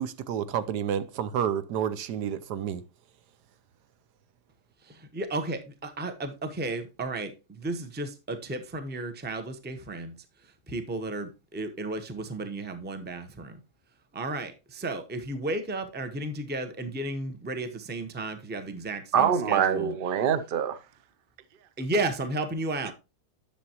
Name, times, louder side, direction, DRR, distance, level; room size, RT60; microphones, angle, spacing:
voice 1, 0.0-2.8, right 9 dB, 85° right, 1.3 m, -30 dB
voice 2, 4.9-10.1 10.7-13.6 14.1-19.9 21.8-22.9, right 2 dB, 10° right, 0.6 m, -33 dB
voice 3, 19.1-20.8, right 8 dB, 55° right, 0.6 m, -24 dB
10.5 x 6.9 x 2.9 m
omnidirectional pair, 1.7 m